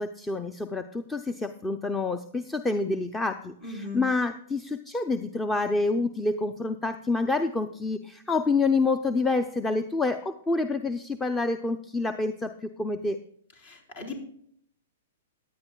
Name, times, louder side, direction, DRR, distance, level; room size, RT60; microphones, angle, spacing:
voice 1, 0.0-13.2, left 3 dB, 10° left, 10 dB, 0.6 m, -28 dB
voice 2, 3.6-4.0 13.6-14.1, left 4 dB, 60° left, 1 dB, 4.1 m, -37 dB
17.5 x 10.5 x 2.3 m, 0.66 s
hypercardioid pair, 115°, 0 cm